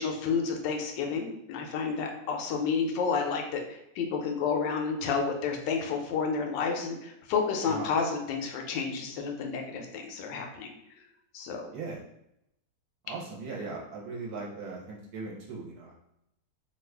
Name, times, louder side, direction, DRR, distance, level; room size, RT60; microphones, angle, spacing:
voice 1, 0.0-10.7 11.3-11.7, left 5 dB, 85° left, 3 dB, 1.2 m, -30 dB
voice 2, 13.0-15.9, right 4 dB, 65° right, -4 dB, 1.1 m, -39 dB
3.0 x 2.4 x 3.3 m, 0.81 s
omnidirectional pair, 1.9 m